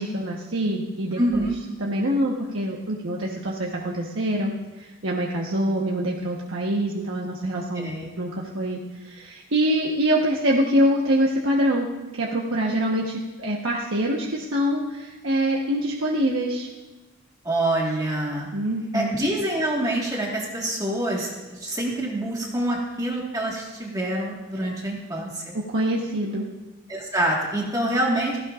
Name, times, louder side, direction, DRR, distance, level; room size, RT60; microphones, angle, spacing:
voice 1, 0.0-1.5 1.8-8.3 8.5-11.9 12.1-16.7 18.5-19.1 24.6-24.9 25.5-26.5 27.8-27.9, equal, 70° right, -3 dB, 1.2 m, -25 dB
voice 2, 1.2-1.6 7.7-8.1 17.4-18.5 18.9-25.4 26.9-28.4, right 1 dB, 15° right, -3 dB, 1.7 m, -26 dB
16.5 x 15.5 x 2.5 m, 1.2 s
head